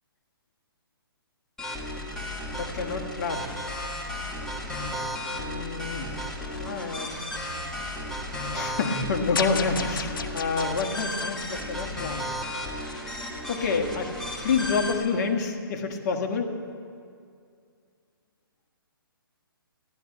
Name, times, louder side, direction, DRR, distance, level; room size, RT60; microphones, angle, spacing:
sound 1, 1.6-15.0, left 1 dB, 5° left, 2.0 m, -34 dB
voice 1, 2.5-3.4 5.3-6.1 6.5-7.2 8.5-12.2 13.5-14.1 14.4-16.5, left 4 dB, 45° left, 3 dB, 1.8 m, -28 dB
sound 2, 9.4-12.6, left 6 dB, 60° left, 1.2 m, -34 dB
14.5 x 12.0 x 7.9 m, 2.3 s
hypercardioid pair, 145°, 12 cm